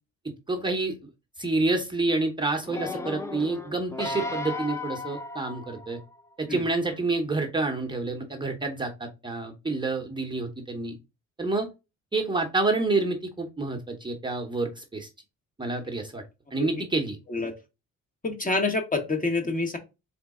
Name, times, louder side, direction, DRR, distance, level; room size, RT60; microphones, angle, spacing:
voice 1, 0.5-0.9 1.4-6.0 6.4-11.0 11.4-11.7 12.1-15.1 15.6-16.2 16.5-17.2, right 3 dB, 15° right, 1 dB, 0.9 m, -28 dB
sound 1, 2.6-6.1 6.8-6.9, left 3 dB, 10° left, 0.6 m, -35 dB
voice 2, 18.2-19.8, left 3 dB, 25° left, 4 dB, 1.3 m, -27 dB
4.0 x 3.2 x 3.6 m, 0.26 s
cardioid pair, 90°, 30 cm